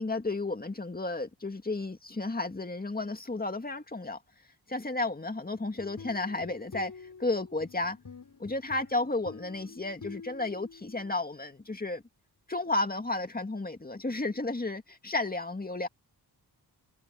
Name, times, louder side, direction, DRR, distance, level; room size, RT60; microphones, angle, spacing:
voice 1, 0.0-4.2 4.7-6.9 7.2-8.0 8.4-12.0 12.5-15.9, left 2 dB, 20° left, 2.3 m, -32 dB
sound 1, 5.6-11.1, left 5 dB, 50° left, 6.9 m, -48 dB
wide cardioid pair, 105°, 41 cm